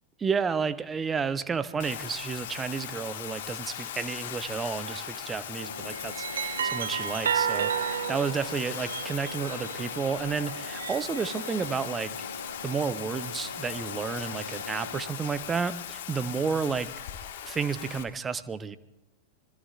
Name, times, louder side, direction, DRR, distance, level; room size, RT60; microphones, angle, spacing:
voice 1, 0.2-12.1 12.6-16.9 17.4-18.8, right 5 dB, 20° right, 14 dB, 0.8 m, -31 dB
Bathtub (filling or washing), 1.8-18.0, left 10 dB, 55° left, 1.6 m, -39 dB
sound 1, 4.9-5.2 5.8-10.0 10.5-11.7, right 8 dB, 65° right, 0.5 m, -32 dB
sound 2, 5.6-15.1, left 1 dB, 85° left, 1.3 m, -42 dB
25.5 x 21.5 x 2.5 m, 1.0 s
figure-of-eight pair, 90°, 0 cm